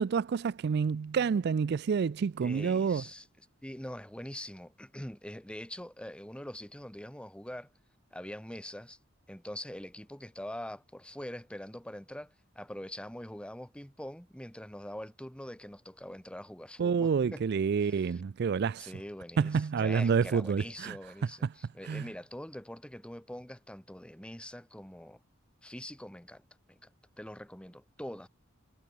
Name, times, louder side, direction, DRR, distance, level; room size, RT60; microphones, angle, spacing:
voice 1, 0.0-3.0 16.8-18.9 19.4-21.0 21.8-22.0, right 6 dB, 55° right, 0.4 m, -28 dB
voice 2, 2.4-3.3 3.6-7.7 8.1-9.0 9.3-17.4 17.8-18.2 18.8-25.2 25.6-26.4 26.7-26.9 27.2-28.3, left 1 dB, 5° left, 1.3 m, -44 dB
head